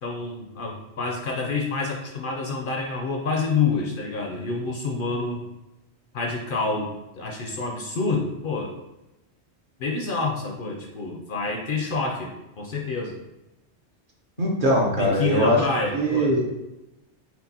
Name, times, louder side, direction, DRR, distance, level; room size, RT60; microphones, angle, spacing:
voice 1, 0.0-5.4 6.1-6.9 7.2-8.7 9.8-13.1 15.0-16.3, left 4 dB, 60° left, 1 dB, 0.6 m, -28 dB
voice 2, 14.4-15.6 15.9-16.5, equal, 50° right, -2 dB, 1.0 m, -21 dB
4.5 x 3.7 x 2.7 m, 0.96 s
omnidirectional pair, 1.2 m